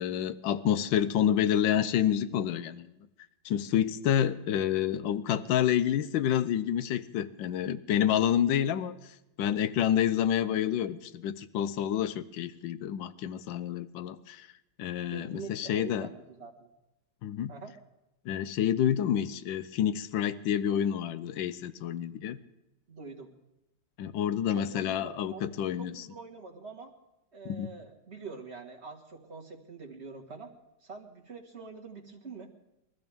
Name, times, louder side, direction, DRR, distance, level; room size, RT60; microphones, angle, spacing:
voice 1, 0.0-2.9 3.4-8.9 9.4-14.5 14.8-16.1 17.2-17.5 18.2-22.4 24.0-26.1 27.4-27.7, left 10 dB, 80° left, 13 dB, 1.4 m, -28 dB
voice 2, 15.1-16.7 17.5-17.7 22.9-23.3 24.5-25.4 25.8-26.9 27.3-30.5 30.8-32.5, right 4 dB, 35° right, 0 dB, 2.0 m, -45 dB
23.5 x 14.0 x 3.5 m, 0.91 s
omnidirectional pair, 2.0 m